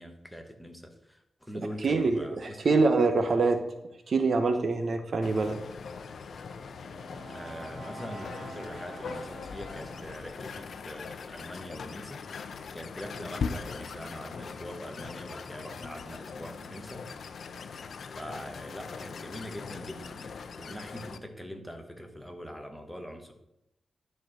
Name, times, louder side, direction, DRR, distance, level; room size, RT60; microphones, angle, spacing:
voice 1, 0.0-2.8 7.3-12.2 12.7-17.0 18.1-23.3, equal, ahead, 4 dB, 1.1 m, -43 dB
voice 2, 1.8-3.6 4.1-5.6, right 3 dB, 45° right, 7 dB, 0.7 m, -25 dB
sound 1, 5.2-21.2, left 5 dB, 65° left, 0.6 m, -40 dB
Brass instrument, 6.4-10.4, right 3 dB, 70° right, 1.6 m, -47 dB
10.5 x 4.4 x 6.3 m, 0.84 s
wide cardioid pair, 160°, 0 cm